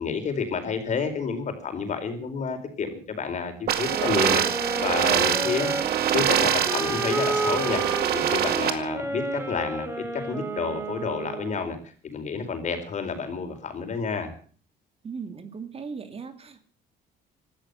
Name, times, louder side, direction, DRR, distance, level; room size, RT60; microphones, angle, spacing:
voice 1, 0.0-5.7 6.1-11.8 12.0-14.3, left 5 dB, 45° left, 7 dB, 4.5 m, -30 dB
sound 1, 3.7-8.7, right 10 dB, 65° right, 2.1 m, -24 dB
sound 2, 3.9-11.7, right 2 dB, 15° right, 4.3 m, -31 dB
voice 2, 15.0-16.6, right 5 dB, 35° right, 9 dB, 2.2 m, -37 dB
16.5 x 13.0 x 6.8 m, 0.43 s
cardioid pair, 110°, 17 cm